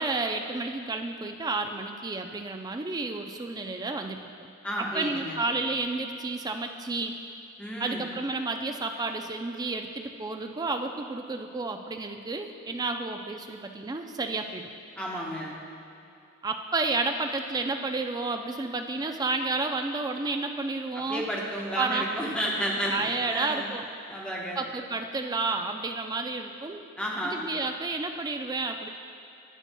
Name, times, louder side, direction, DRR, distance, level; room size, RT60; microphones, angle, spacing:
voice 1, 0.0-4.2 4.8-7.1 7.8-14.7 16.4-21.2 21.8-22.1 22.9-23.9 24.6-26.8 27.2-28.9, right 3 dB, 15° right, 5 dB, 0.3 m, -31 dB
voice 2, 4.6-5.4 7.6-8.1 15.0-15.5 20.9-23.7 24.1-24.7 27.0-27.5, equal, 5° left, -4 dB, 0.9 m, -32 dB
9.1 x 8.9 x 2.2 m, 2.7 s
head